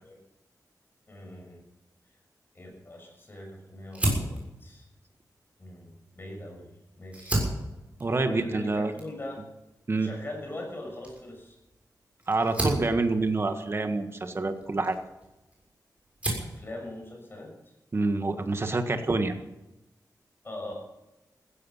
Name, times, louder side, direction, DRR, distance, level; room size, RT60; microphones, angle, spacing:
voice 1, 1.1-1.6 2.5-4.9 5.6-7.4 8.2-9.5 10.0-11.6 16.4-17.5 20.4-20.7, left 1 dB, 30° left, 1 dB, 6.4 m, -41 dB
Fire, 3.9-6.5 7.0-15.6 16.0-16.6, right 1 dB, 20° right, 6.6 m, -34 dB
voice 2, 8.0-8.9 9.9-10.1 12.3-15.0 17.9-19.3, right 3 dB, 35° right, 7 dB, 1.6 m, -27 dB
15.5 x 15.5 x 5.8 m, 0.97 s
wide cardioid pair, 140°, 7 cm